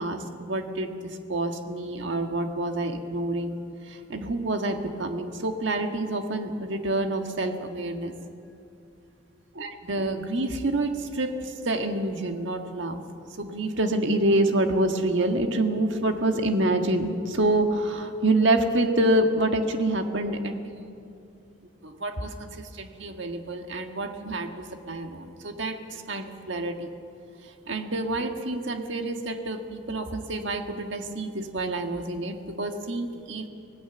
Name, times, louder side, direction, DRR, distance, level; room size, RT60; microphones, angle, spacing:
voice 1, 0.0-3.6 3.8-8.1 9.5-13.0 13.4-21.0 21.8-26.9 27.7-33.5, right 1 dB, 65° right, 5 dB, 1.7 m, -27 dB
25.0 x 17.5 x 7.0 m, 2.6 s
head